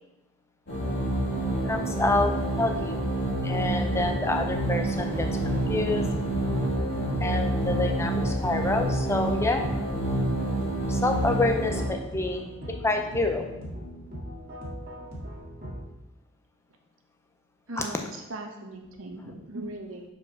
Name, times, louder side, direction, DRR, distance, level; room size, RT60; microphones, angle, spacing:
sound 1, 0.7-11.9, right 1 dB, 50° left, 1.8 m, -28 dB
voice 1, 1.7-3.0 3.4-6.2 7.2-9.7 10.9-12.5 12.8-13.5 17.8-17.9 19.2-19.3, left 2 dB, 10° left, 4 dB, 0.5 m, -28 dB
sound 2, 4.9-15.8, equal, 40° right, 1.8 m, -39 dB
voice 2, 17.7-20.0, right 2 dB, 65° right, 3 dB, 1.0 m, -38 dB
4.8 x 4.5 x 5.6 m, 0.95 s
head